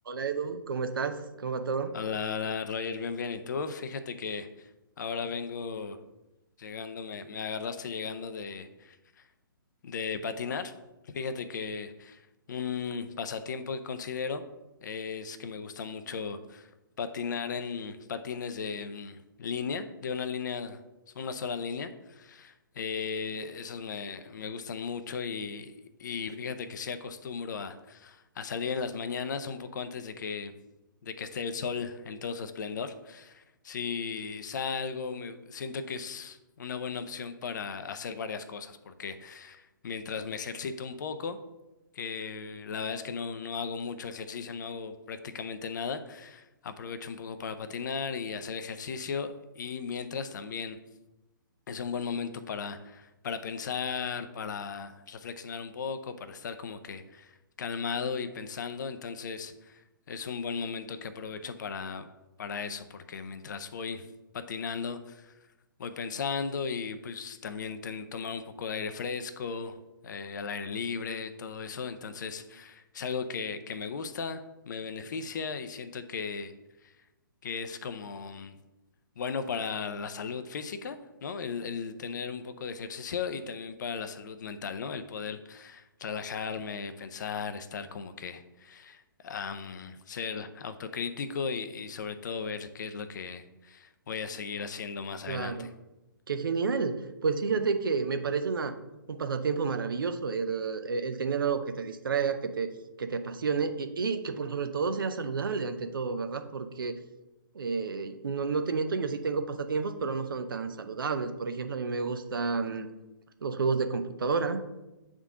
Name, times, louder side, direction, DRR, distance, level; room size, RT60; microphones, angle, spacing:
voice 1, 0.1-2.0 95.3-95.7 96.3-98.7 99.1-102.7 103.0-107.0 107.5-112.9 113.4-114.6, right 5 dB, 75° right, 9 dB, 0.6 m, -30 dB
voice 2, 1.9-4.7 5.0-6.0 6.6-9.0 9.8-10.7 11.0-12.2 12.5-14.4 14.8-16.7 17.0-20.8 21.1-25.7 26.0-30.5 31.0-41.4 41.9-50.8 51.7-59.8 60.1-62.1 62.4-64.1 64.3-65.3 65.8-69.8 70.0-76.5 76.8-76.9 77.4-78.6 79.2-95.7, left 5 dB, 55° left, 10 dB, 0.6 m, -36 dB
8.1 x 3.7 x 3.6 m, 1.0 s
hypercardioid pair, 135°, 12 cm